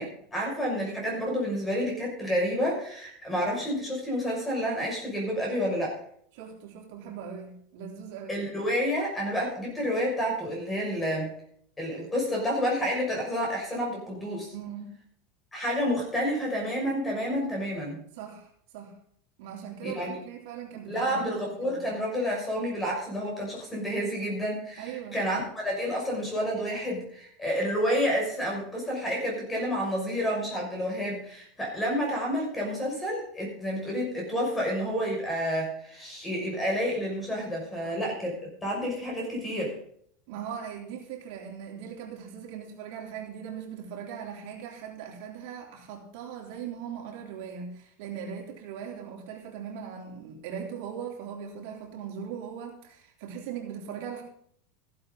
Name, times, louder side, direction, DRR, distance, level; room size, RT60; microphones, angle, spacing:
voice 1, 0.0-5.9 8.3-11.3 11.8-14.5 15.5-18.0 19.8-20.1 20.9-38.4 38.6-39.7, equal, 10° left, -1 dB, 6.0 m, -29 dB
voice 2, 6.3-8.4 14.5-15.0 18.1-19.0 19.4-21.9 24.8-25.2 37.8-38.0 40.3-54.2, right 7 dB, 65° right, 0 dB, 3.5 m, -40 dB
15.0 x 11.5 x 4.0 m, 0.64 s
supercardioid pair, 155°, 0 cm